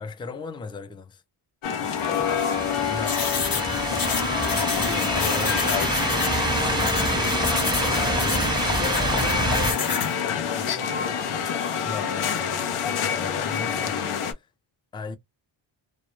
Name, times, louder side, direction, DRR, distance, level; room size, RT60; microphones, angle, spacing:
voice 1, 0.0-1.2 2.9-3.3 4.5-5.7 11.8-14.1 14.9-15.2, left 4 dB, 10° left, 0.3 m, -36 dB
sound 1, 1.6-14.3, left 8 dB, 85° left, 0.6 m, -27 dB
voice 2, 1.8-2.4 7.6-8.5 8.8-11.2, left 6 dB, 70° left, 1.0 m, -38 dB
sound 2, 1.9-9.7, right 2 dB, 10° right, 0.7 m, -27 dB
sound 3, 3.1-10.1, left 5 dB, 45° left, 0.7 m, -30 dB
2.1 x 2.1 x 3.0 m
cardioid pair, 80°, 49 cm